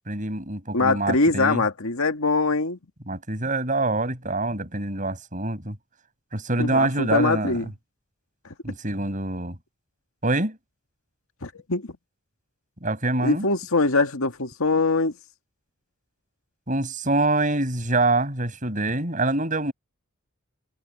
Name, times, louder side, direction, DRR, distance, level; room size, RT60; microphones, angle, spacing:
voice 1, 0.1-1.6 3.1-5.8 6.3-7.6 8.6-9.6 10.2-10.6 12.8-13.4 16.7-19.7, right 2 dB, 40° right, 6.5 m, -25 dB
voice 2, 0.7-2.8 6.6-7.7 11.4-11.9 13.2-15.1, left 3 dB, 85° left, 1.9 m, -23 dB
head